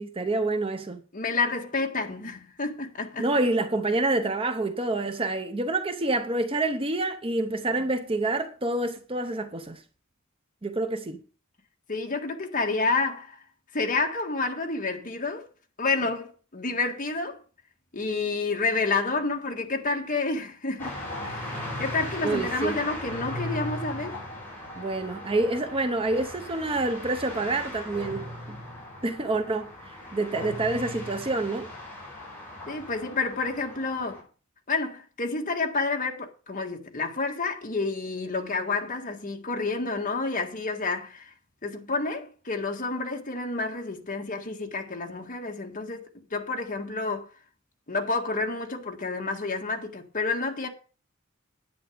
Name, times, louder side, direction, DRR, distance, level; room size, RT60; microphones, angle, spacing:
voice 1, 0.0-1.0 3.2-9.8 10.6-11.2 22.2-22.8 24.8-28.6 29.0-31.7, right 2 dB, 25° right, 0.8 m, -27 dB
voice 2, 1.1-3.3 11.9-13.4 13.7-15.5 15.8-17.4 17.9-21.0 21.2-24.2 30.4-30.5 32.7-34.2 34.7-41.3 41.6-46.1 46.3-47.3 47.9-50.7, left 3 dB, 40° left, 1.8 m, -29 dB
sound 1, 20.8-34.2, left 1 dB, 10° left, 6.3 m, -38 dB
10.0 x 9.0 x 5.1 m
head